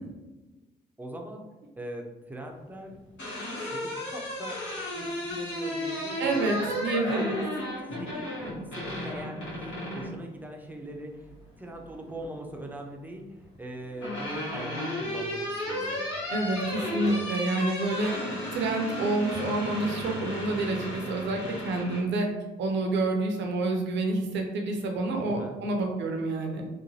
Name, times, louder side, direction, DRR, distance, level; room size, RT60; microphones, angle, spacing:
voice 1, 1.0-1.5 1.8-3.0 3.7-4.6 4.9-6.8 7.1-7.3 8.0-8.3 8.7-11.3 11.6-16.0 16.7-17.2 25.2-25.6, right 1 dB, 10° right, 1 dB, 0.6 m, -41 dB
sound 1, 2.9-10.1 11.6-12.3 13.5-22.0, left 1 dB, 75° left, 1.2 m, -34 dB
voice 2, 6.2-7.4 16.3-18.1 18.5-22.3 22.6-26.6, right 2 dB, 65° right, 2 dB, 0.6 m, -28 dB
2.9 x 2.2 x 2.7 m, 1.1 s
hypercardioid pair, 50°, 20 cm